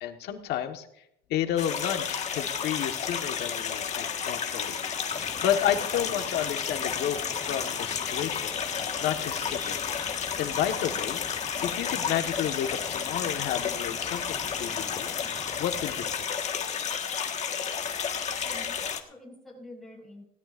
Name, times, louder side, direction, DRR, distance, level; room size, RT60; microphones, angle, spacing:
voice 1, 0.0-0.9 1.3-4.8 5.4-8.5 9.0-9.7 10.4-11.2 11.6-15.1 15.6-16.3, left 10 dB, 80° left, 6 dB, 1.5 m, -31 dB
sound 1, 1.6-19.0, left 7 dB, 45° left, 1.5 m, -32 dB
sound 2, 5.1-16.2, left 5 dB, 25° left, 0.6 m, -43 dB
voice 2, 18.4-20.2, left 1 dB, ahead, -5 dB, 7.2 m, -47 dB
19.5 x 17.0 x 2.6 m, 0.78 s
cardioid pair, 110°, 17 cm